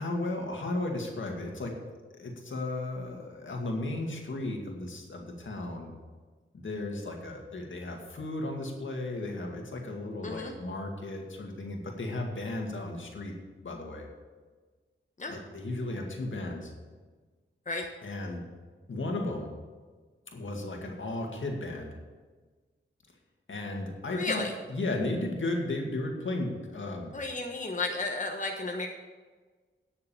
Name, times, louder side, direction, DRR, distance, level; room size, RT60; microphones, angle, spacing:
voice 1, 0.0-1.7 2.2-5.9 6.5-13.3 13.6-14.1 15.3-16.7 18.0-18.4 18.9-19.5 20.3-22.0 23.5-27.1, left 2 dB, 75° left, 1 dB, 2.1 m, -35 dB
voice 2, 24.1-24.5 27.1-28.9, left 3 dB, 40° left, 2 dB, 1.2 m, -33 dB
10.5 x 6.7 x 7.0 m, 1.4 s
cardioid pair, 60°, 20 cm